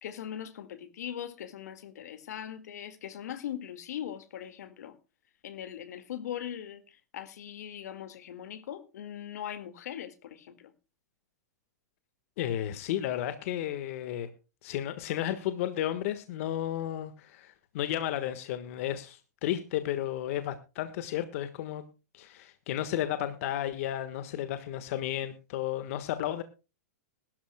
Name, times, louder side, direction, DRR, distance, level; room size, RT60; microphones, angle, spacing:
voice 1, 0.0-5.0 5.4-10.7, left 10 dB, 75° left, 1.9 m, -40 dB
voice 2, 12.4-14.3 14.6-21.8 22.1-26.4, left 12 dB, 55° left, 1.4 m, -33 dB
21.0 x 12.5 x 2.2 m
hypercardioid pair, 145°, 9 cm